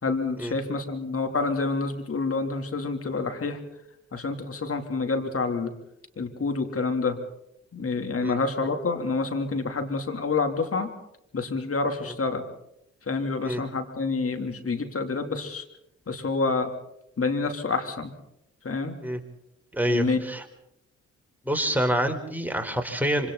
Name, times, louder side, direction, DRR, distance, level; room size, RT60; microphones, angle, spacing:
voice 1, 0.0-3.6 4.1-5.7 6.2-7.2 7.7-10.9 11.3-12.4 13.1-15.6 16.1-16.7 17.2-18.1 18.6-19.0 19.8-20.2, left 4 dB, 45° left, 5 dB, 3.8 m, -28 dB
voice 2, 19.7-20.4 21.4-23.3, equal, 5° right, 4 dB, 4.7 m, -27 dB
26.5 x 26.0 x 4.3 m, 0.80 s
hypercardioid pair, 45°, 32 cm